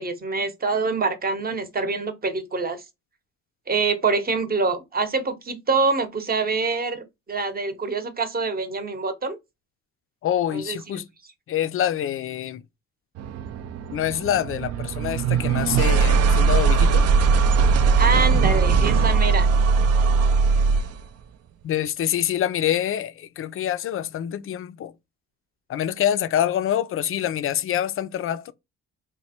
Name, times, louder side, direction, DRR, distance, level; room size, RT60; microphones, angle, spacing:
voice 1, 0.0-2.8 3.7-9.4 10.5-10.8 18.0-19.5, right 4 dB, 30° right, 0.8 m, -25 dB
voice 2, 10.2-11.1 11.5-12.6 13.9-17.1 21.6-24.9 25.7-28.5, left 10 dB, 45° left, 0.4 m, -26 dB
sound 1, 13.2-21.0, right 5 dB, 55° right, 0.4 m, -19 dB
3.1 x 2.1 x 4.2 m
cardioid pair, 90°, 30 cm